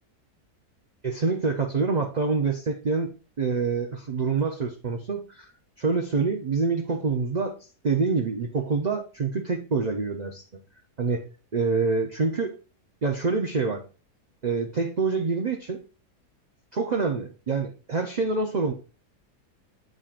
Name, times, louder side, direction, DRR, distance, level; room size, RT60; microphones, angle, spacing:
voice 1, 1.0-3.1 3.4-5.5 5.8-7.6 7.8-10.4 11.0-11.2 11.5-12.6 13.0-13.8 14.4-15.8 16.7-18.7, right 4 dB, 55° right, 3 dB, 0.5 m, -26 dB
8.8 x 6.3 x 2.5 m, 0.35 s
omnidirectional pair, 1.7 m